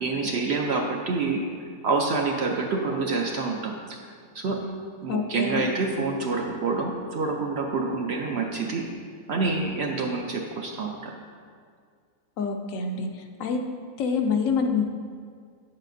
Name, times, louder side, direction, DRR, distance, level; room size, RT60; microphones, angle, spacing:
voice 1, 0.0-1.4 1.8-4.0 4.3-4.6 5.0-8.9 9.3-11.1, right 4 dB, 65° right, 1 dB, 0.7 m, -27 dB
voice 2, 5.1-5.7 12.4-13.1 13.4-13.7 14.0-14.8, left 5 dB, 70° left, 4 dB, 0.9 m, -26 dB
8.2 x 7.3 x 2.6 m, 2.1 s
omnidirectional pair, 1.5 m